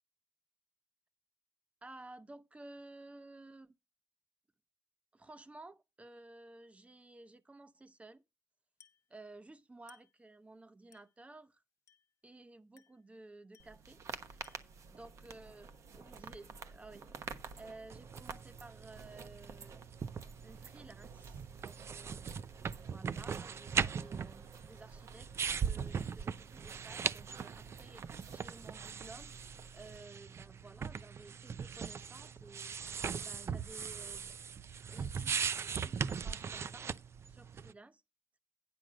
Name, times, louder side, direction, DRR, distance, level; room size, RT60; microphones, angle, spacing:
voice 1, 1.8-3.7 5.1-8.2 9.1-11.6 12.2-14.0 14.3-14.5 14.9-17.1 17.6-19.8 20.4-22.3 22.8-34.4 34.8-36.9 37.3-38.0, right 2 dB, 25° right, 0.8 m, -55 dB
Glass, 8.8-9.1 9.9-10.2 10.9-11.2 11.9-12.2 12.8-13.1 13.5-13.9 14.4-14.8, left 9 dB, 85° left, 0.9 m, -65 dB
sound 1, 13.6-30.0, right 5 dB, 80° right, 1.1 m, -51 dB
sound 2, 17.9-37.7, right 6 dB, 60° right, 0.5 m, -40 dB
9.6 x 6.3 x 5.1 m
cardioid pair, 70°, 5 cm